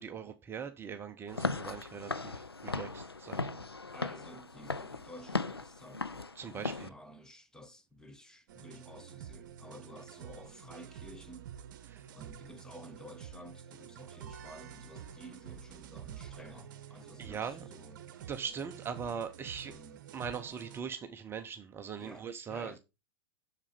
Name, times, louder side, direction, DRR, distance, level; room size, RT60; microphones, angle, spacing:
voice 1, 0.0-3.6 6.4-6.9 11.9-12.1 17.2-17.6 18.3-19.7 20.1-22.8, right 7 dB, 20° right, 0.7 m, -41 dB
Walk footsteps / Siren, 1.3-6.9, left 3 dB, 85° left, 0.5 m, -37 dB
voice 2, 3.9-11.5 12.1-18.0 19.7-20.0 22.0-22.8, equal, 5° left, 1.0 m, -52 dB
sound 1, 8.5-20.8, right 9 dB, 50° right, 0.9 m, -49 dB
7.4 x 6.7 x 5.0 m
figure-of-eight pair, 95°, 13 cm